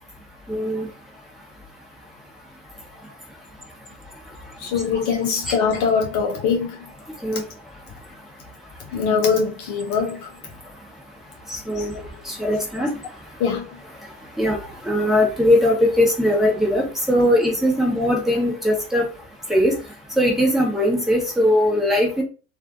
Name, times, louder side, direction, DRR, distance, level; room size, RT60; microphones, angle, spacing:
voice 1, 0.5-0.9 5.5-5.6 7.2-7.4 11.5-11.9 12.2-13.0 14.4-19.0 19.5-19.8 20.2-22.2, left 1 dB, ahead, 1.0 m, -20 dB
voice 2, 4.6-6.8 8.9-10.3 11.8-12.0 13.4-13.7, left 6 dB, 45° left, 0.6 m, -22 dB
2.5 x 2.4 x 2.4 m
hypercardioid pair, 80°, 40 cm